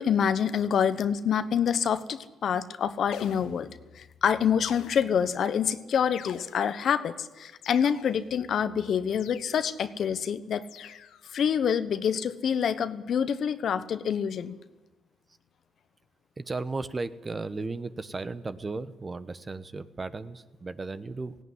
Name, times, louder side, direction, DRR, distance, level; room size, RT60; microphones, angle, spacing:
voice 1, 0.0-3.7 3.9-10.9 11.3-14.6, left 8 dB, 60° left, 12 dB, 1.1 m, -27 dB
sound 1, 3.1-3.9 4.6-5.4 6.1-6.9 7.6-8.4 9.1-9.9 10.6-11.3, left 10 dB, 85° left, 1.0 m, -45 dB
voice 2, 16.4-21.4, right 3 dB, 30° right, 12 dB, 1.1 m, -35 dB
17.5 x 17.0 x 9.7 m, 1.1 s
cardioid pair, 90°, 0 cm